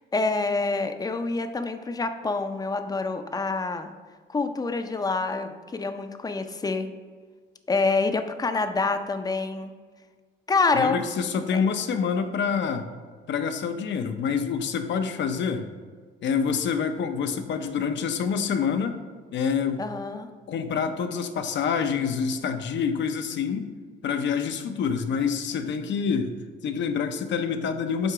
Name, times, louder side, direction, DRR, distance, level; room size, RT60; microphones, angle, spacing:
voice 1, 0.0-3.9 4.3-6.9 7.7-9.7 10.5-11.0 11.5-11.6 19.8-20.3, left 3 dB, 20° left, 8 dB, 0.5 m, -26 dB
voice 2, 10.7-12.9 13.3-15.7 16.2-19.0 19.3-19.9 20.5-23.7 24.0-26.3 26.6-28.1, left 6 dB, 65° left, 7 dB, 0.6 m, -27 dB
7.6 x 2.9 x 4.7 m, 1.5 s
cardioid pair, 95°, 20 cm